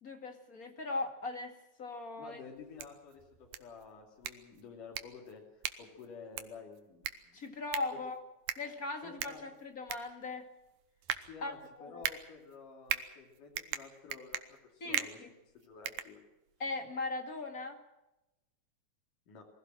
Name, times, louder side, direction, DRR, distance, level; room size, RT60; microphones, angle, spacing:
voice 1, 0.0-1.5 1.8-2.4 7.3-8.2 8.6-10.5 11.4-12.0 14.8-15.3 16.6-17.8, left 3 dB, 30° left, 5 dB, 2.0 m, -39 dB
voice 2, 2.2-7.4 7.9-8.0 9.0-9.4 11.3-15.2 15.6-16.2 19.3-19.4, left 5 dB, 75° left, 0 dB, 4.3 m, -51 dB
sound 1, 2.6-16.7, right 11 dB, 85° right, 2.7 m, -41 dB
24.0 x 16.0 x 7.5 m, 0.97 s
omnidirectional pair, 3.7 m